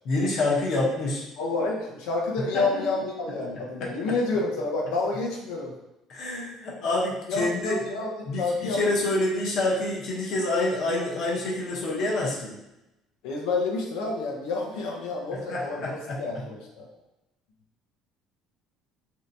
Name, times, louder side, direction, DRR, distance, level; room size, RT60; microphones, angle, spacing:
voice 1, 0.0-1.3 2.5-3.0 3.8-3.9 6.1-7.8 8.3-12.6 15.3-16.4, left 2 dB, 45° left, -3 dB, 0.8 m, -27 dB
voice 2, 1.4-5.7 7.3-8.1 8.4-8.8 13.2-16.9, left 3 dB, 90° left, -1 dB, 0.6 m, -29 dB
3.2 x 2.7 x 2.6 m, 0.91 s
cardioid pair, 170°, 0 cm